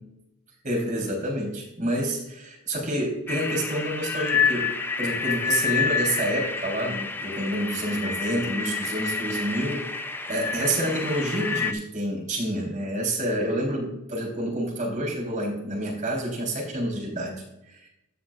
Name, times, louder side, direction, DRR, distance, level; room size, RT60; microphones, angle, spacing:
voice 1, 0.6-4.7 5.0-9.8 10.3-17.9, right 1 dB, 40° right, -2 dB, 3.7 m, -28 dB
sound 1, 3.3-11.7, left 5 dB, 10° left, 0.5 m, -28 dB
16.0 x 6.2 x 2.4 m, 0.86 s
head